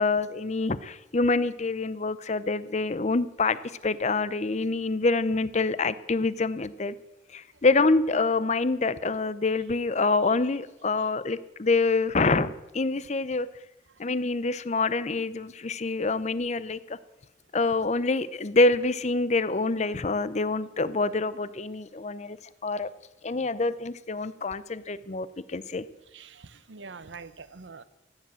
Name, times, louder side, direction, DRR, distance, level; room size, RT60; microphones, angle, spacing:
voice 1, 0.0-3.6 3.8-6.9 7.3-13.5 14.0-17.0 17.5-22.4 22.6-22.9 23.2-25.8, left 3 dB, 40° left, 16 dB, 0.6 m, -26 dB
voice 2, 26.1-27.8, right 4 dB, 80° right, 15 dB, 0.9 m, -44 dB
15.0 x 10.0 x 7.6 m, 0.99 s
head